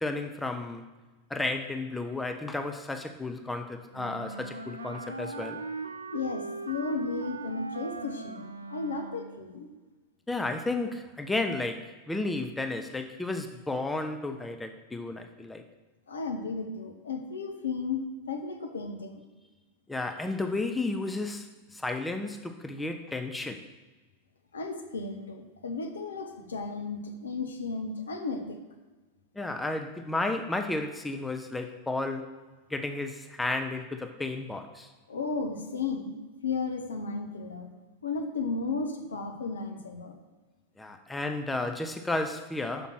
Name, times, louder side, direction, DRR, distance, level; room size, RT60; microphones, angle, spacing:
voice 1, 0.0-0.9 1.3-5.6 10.3-15.6 19.9-23.7 29.4-32.4 32.7-34.9 40.8-42.9, left 2 dB, 10° left, 6 dB, 0.5 m, -33 dB
Wind instrument woodwind instrument, 3.9-9.5, right 3 dB, 80° right, 0.5 m, -39 dB
voice 2, 6.1-8.4 8.7-9.7 16.1-19.2 24.5-28.6 35.1-37.7 38.0-40.1, left 4 dB, 70° left, 4 dB, 0.9 m, -34 dB
6.1 x 5.1 x 6.0 m, 1.3 s
figure-of-eight pair, 90°, 0 cm